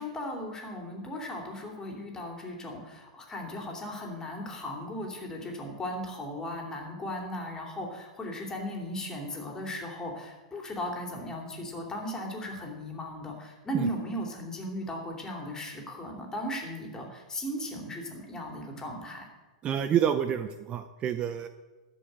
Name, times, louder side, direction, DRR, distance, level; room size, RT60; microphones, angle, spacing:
voice 1, 0.0-19.3, equal, 15° left, 1 dB, 2.8 m, -37 dB
voice 2, 19.6-21.5, right 9 dB, 30° right, 9 dB, 0.6 m, -28 dB
12.5 x 5.3 x 8.7 m, 1.2 s
hypercardioid pair, 120°, 4 cm